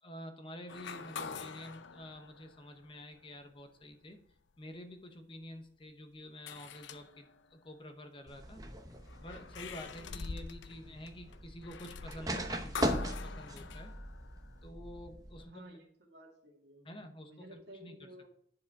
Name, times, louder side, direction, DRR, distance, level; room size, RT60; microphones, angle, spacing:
voice 1, 0.0-4.2 4.6-8.6 9.2-13.9 14.6-15.6 16.8-18.0, left 1 dB, 25° left, 7 dB, 0.8 m, -49 dB
sound 1, 0.7-3.2 3.8-3.9 6.5-7.5 8.9-14.7, left 5 dB, 75° left, 0.6 m, -46 dB
sound 2, 8.3-15.4, equal, 20° right, 0.8 m, -40 dB
voice 2, 10.6-11.1 15.4-16.9 17.2-18.3, equal, 60° right, 0 dB, 2.2 m, -54 dB
10.0 x 4.8 x 4.7 m, 0.66 s
head